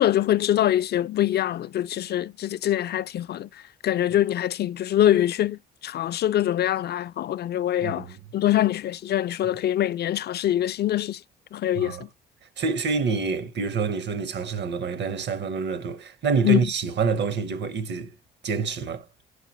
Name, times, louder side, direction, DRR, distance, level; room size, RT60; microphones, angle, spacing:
voice 1, 0.0-11.2 11.5-12.1 16.4-16.7, left 12 dB, 55° left, 0.4 m, -24 dB
voice 2, 7.8-8.2 11.8-12.0 12.6-18.1 18.4-19.0, right 5 dB, 60° right, 1.1 m, -27 dB
10.0 x 5.4 x 3.0 m
cardioid pair, 90°, 20 cm